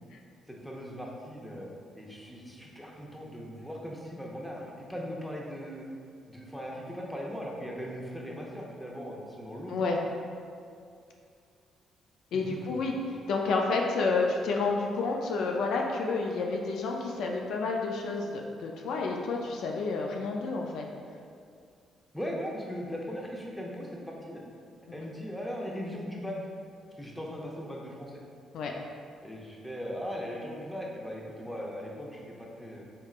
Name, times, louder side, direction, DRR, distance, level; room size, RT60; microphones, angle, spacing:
voice 1, 0.5-1.7 1.9-5.8 6.3-9.8 12.3-12.8 22.1-24.4 24.9-26.4 27.0-28.2 29.2-32.8, equal, 5° left, -3 dB, 0.7 m, -39 dB
voice 2, 12.3-12.9 13.3-20.9 28.5-28.7, left 3 dB, 75° left, 1 dB, 0.4 m, -30 dB
4.2 x 3.5 x 2.4 m, 2.3 s
cardioid pair, 90°, 0 cm